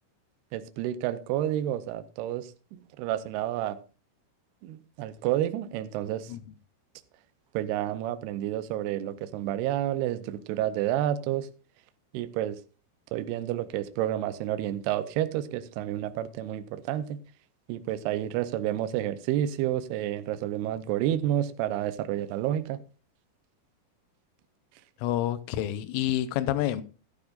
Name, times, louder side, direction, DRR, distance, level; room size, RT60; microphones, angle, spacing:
voice 1, 0.5-3.8 4.6-6.3 7.5-11.5 12.1-12.6 13.1-17.2 17.7-22.8, right 12 dB, 85° right, 2.3 m, -30 dB
voice 2, 25.0-26.8, left 12 dB, 85° left, 3.3 m, -28 dB
14.5 x 12.0 x 2.5 m
omnidirectional pair, 5.7 m